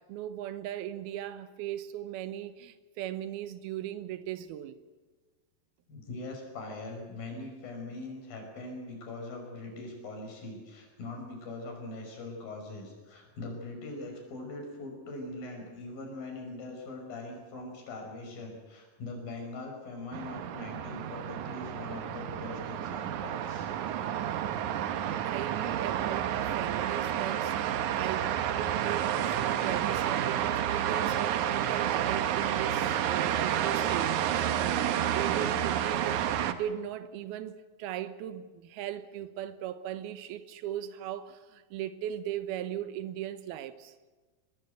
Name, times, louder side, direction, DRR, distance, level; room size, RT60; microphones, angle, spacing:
voice 1, 0.0-4.8 25.2-43.9, right 11 dB, 85° right, 3.0 m, -38 dB
voice 2, 5.9-23.7, left 2 dB, 70° left, 7.0 m, -42 dB
sound 1, 20.1-36.5, right 10 dB, 65° right, 2.2 m, -30 dB
24.0 x 19.5 x 8.2 m
omnidirectional pair, 4.3 m